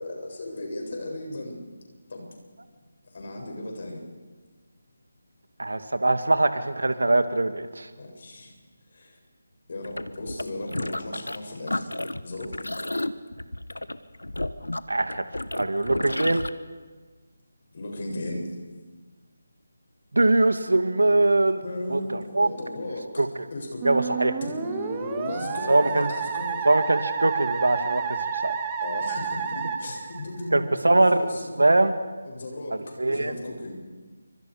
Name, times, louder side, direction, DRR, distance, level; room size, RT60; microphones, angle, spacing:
voice 1, 0.0-1.6 2.1-2.4 3.1-4.0 7.9-8.5 8.9-9.2 9.7-12.0 12.2-12.9 17.7-18.6 21.6-23.2 23.5-23.9 24.4-26.7 28.8-31.9 32.2-33.7, left 1 dB, 50° left, 1 dB, 7.8 m, -36 dB
voice 2, 5.6-7.9 14.9-15.2 15.5-16.5 20.1-21.6 21.9-22.5 23.2-23.3 23.8-24.4 25.7-26.1 26.6-28.6 30.5-31.3 31.6-32.0 33.0-33.3, right 2 dB, 80° right, 9 dB, 2.1 m, -22 dB
sound 1, 9.8-11.4 11.7-16.5, left 1 dB, 90° left, 1.3 m, -32 dB
Musical instrument, 23.8-30.7, right 6 dB, 20° right, 2.2 m, -30 dB
28.5 x 25.5 x 5.1 m, 1.4 s
figure-of-eight pair, 160°, 0 cm